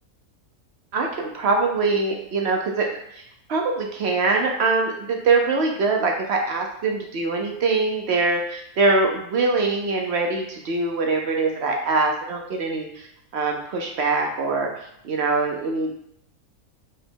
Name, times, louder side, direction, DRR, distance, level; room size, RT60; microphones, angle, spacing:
voice 1, 0.9-2.8 3.1-3.2 3.5-13.1 13.3-14.7 15.0-16.0, right 3 dB, 60° right, 1 dB, 0.7 m, -23 dB
4.9 x 2.2 x 4.4 m, 0.75 s
omnidirectional pair, 1.6 m